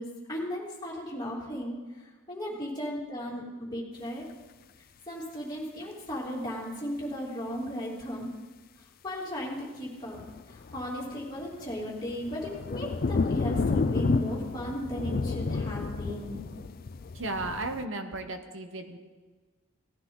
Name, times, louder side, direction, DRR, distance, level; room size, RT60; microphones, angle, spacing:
voice 1, 0.0-4.2 5.1-8.3 9.0-10.2 10.5-16.4, equal, 20° left, -5 dB, 2.9 m, -36 dB
sound 1, 10.1-17.9, left 4 dB, 45° left, 0.4 m, -31 dB
voice 2, 17.1-19.0, right 2 dB, 60° right, 6 dB, 1.2 m, -35 dB
17.5 x 10.0 x 3.9 m, 1.3 s
head